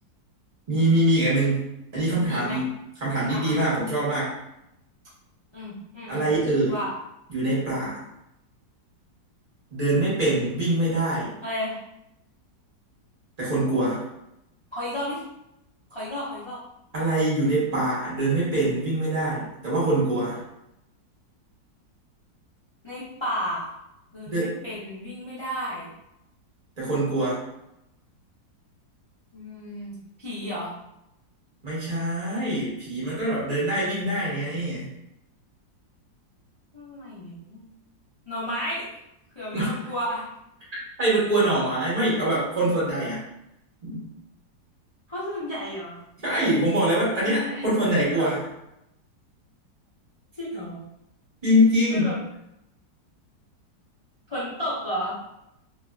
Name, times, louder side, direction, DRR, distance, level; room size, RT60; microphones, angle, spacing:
voice 1, 0.7-1.7 1.9-2.7 3.0-4.3 6.1-6.8 7.3-8.0 9.7-11.3 13.4-14.0 16.9-20.4 24.3-24.5 26.8-27.4 31.6-34.9 39.5-39.7 41.0-43.2 43.8-44.0 46.2-48.4 51.4-52.1, right 1 dB, 35° right, -8 dB, 0.6 m, -24 dB
voice 2, 2.3-2.6 3.3-3.6 5.5-6.3 6.7-6.9 11.4-11.8 14.7-15.2 15.9-16.6 22.8-23.7 24.1-25.9 29.3-30.7 34.3-34.6 36.7-37.7 38.2-38.9 39.3-40.2 45.1-46.0 47.2-47.7 48.1-48.3 50.4-50.8 51.9-52.2 54.3-55.1, equal, 30° left, -11 dB, 0.5 m, -33 dB
2.8 x 2.5 x 2.2 m, 0.85 s
omnidirectional pair, 2.0 m